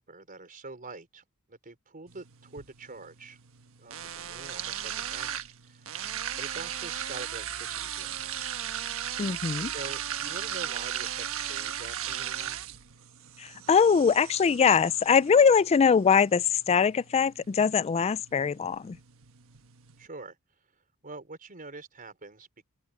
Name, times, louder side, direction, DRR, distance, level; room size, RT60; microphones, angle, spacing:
voice 1, 0.0-3.4 3.8-5.4 5.6-5.9 6.4-8.4 9.6-12.6 20.0-20.4 21.0-22.7, right 3 dB, 40° right, 4.6 m, -45 dB
sound 1, 2.1-20.1, right 10 dB, 65° right, 1.3 m, -37 dB
voice 2, 9.2-9.7 13.7-19.0, left 6 dB, 30° left, 0.3 m, -22 dB
head